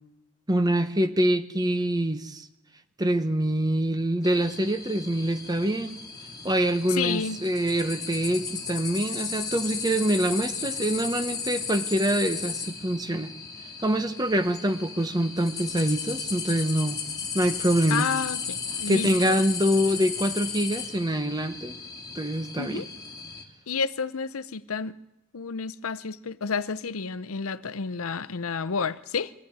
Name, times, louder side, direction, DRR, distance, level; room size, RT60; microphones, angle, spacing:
voice 1, 0.5-2.5 3.0-6.0 6.4-13.3 13.8-17.0 17.3-18.1 18.9-21.8 22.1-22.9, right 1 dB, 20° right, 1.0 m, -25 dB
sound 1, 4.2-23.4, left 6 dB, 15° left, 2.3 m, -35 dB
voice 2, 6.9-7.4 17.9-19.4 22.6-22.9 23.7-25.0 25.3-29.3, left 5 dB, 75° left, 0.7 m, -30 dB
23.0 x 15.0 x 9.5 m
head